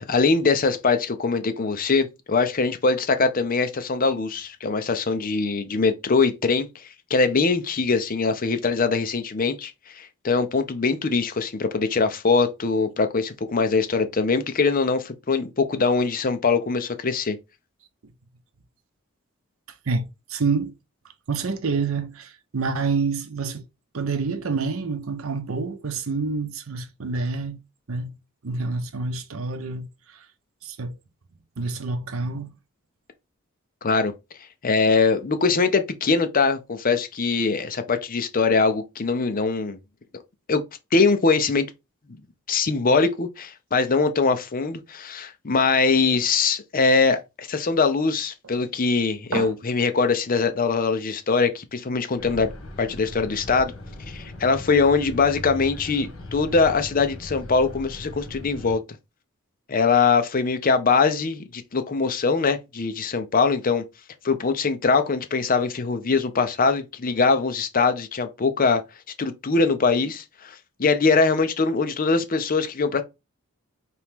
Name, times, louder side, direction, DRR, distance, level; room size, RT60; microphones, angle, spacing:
voice 1, 0.0-17.4 33.8-34.1 34.6-39.8 40.5-40.6 40.9-41.7 42.1-42.2 42.5-52.5 52.8-53.7 54.1-58.8 59.7-63.8 64.2-68.8 69.2-73.0, left 4 dB, 40° left, 0.6 m, -22 dB
voice 2, 19.9-20.7 21.3-23.6 23.9-27.6 27.9-28.1 28.4-29.9 30.6-30.9 31.6-32.5 49.3-49.5, right 4 dB, 75° right, 0.7 m, -27 dB
sound 1, 52.2-58.8, left 1 dB, 75° left, 1.7 m, -39 dB
4.3 x 3.0 x 3.5 m
head